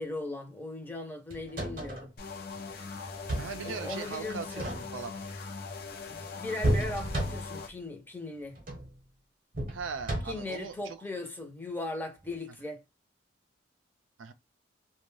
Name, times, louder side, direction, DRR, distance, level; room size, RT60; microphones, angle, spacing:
voice 1, 0.0-2.1 3.6-4.7 6.1-8.6 10.2-12.8, left 2 dB, 10° left, 0.6 m, -38 dB
sound 1, 1.3-2.1 3.0-3.6 4.4-5.2 6.6-7.7 8.6-8.9 9.5-10.6 12.2-12.4, right 1 dB, 45° right, 0.9 m, -32 dB
sound 2, 2.2-7.7, left 4 dB, 50° left, 0.6 m, -41 dB
voice 2, 3.4-5.1 9.7-11.0 14.2-14.3, right 5 dB, 75° right, 0.4 m, -39 dB
2.5 x 2.2 x 3.1 m
head